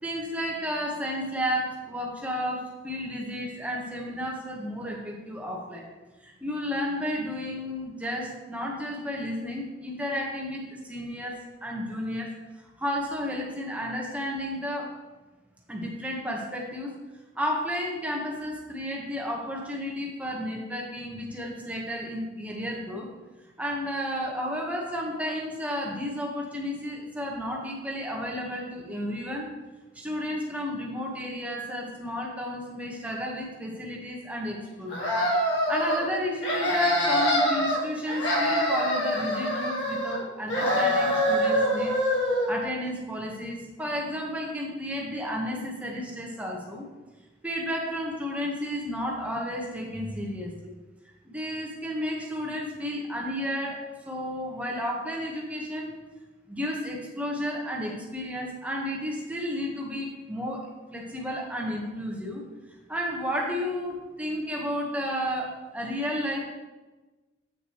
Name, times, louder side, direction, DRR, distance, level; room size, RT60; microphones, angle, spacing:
voice 1, 0.0-5.9 6.2-12.3 12.6-14.9 15.7-16.9 17.3-23.1 23.6-29.5 29.9-35.1 35.7-42.0 42.5-46.8 47.4-50.7 51.2-55.9 56.5-62.4 62.9-66.4, equal, 10° right, -2 dB, 1.2 m, -32 dB
sound 1, 34.9-36.0 36.4-37.8 38.1-40.2 40.5-42.5, equal, 70° left, 1.7 m, -25 dB
8.1 x 6.3 x 3.1 m, 1.2 s
head